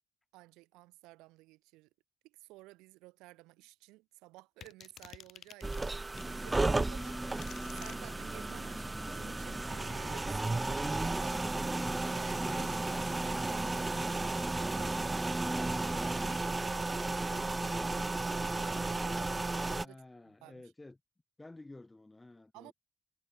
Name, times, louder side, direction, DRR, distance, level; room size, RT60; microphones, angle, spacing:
voice 1, 0.3-1.9 2.2-5.9 6.3-7.2 7.7-11.5 12.1-14.9 15.6-20.0 20.4-20.6 22.5-22.7, right 21 dB, 90° right, 2.4 m, -54 dB
sound 1, 4.6-6.3 7.0-8.0, left 9 dB, 70° left, 3.3 m, -51 dB
sound 2, 5.6-19.9, right 2 dB, 30° right, 2.6 m, -34 dB
sound 3, 6.1-16.4, right 1 dB, 5° right, 2.9 m, -42 dB
voice 2, 19.8-21.0 21.4-22.7, left 2 dB, 25° left, 6.5 m, -53 dB
hypercardioid pair, 45°, 0 cm